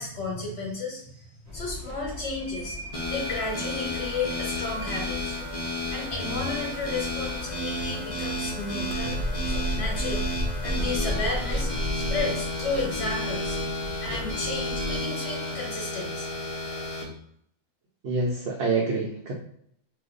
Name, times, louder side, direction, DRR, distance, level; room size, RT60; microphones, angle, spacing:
voice 1, 0.0-5.5 5.9-9.2 9.5-11.7 11.9-16.3 16.7-16.9, left 3 dB, 60° left, -2 dB, 1.4 m, -33 dB
sound 1, 1.4-15.0, left 2 dB, 15° right, 0.9 m, -41 dB
sound 2, 2.9-17.0, left 1 dB, 30° left, 0.8 m, -32 dB
sound 3, 7.1-12.2, equal, 80° right, 0.3 m, -31 dB
voice 2, 18.0-19.3, right 3 dB, 60° right, -2 dB, 0.8 m, -26 dB
2.7 x 2.3 x 3.8 m, 0.69 s
omnidirectional pair, 1.3 m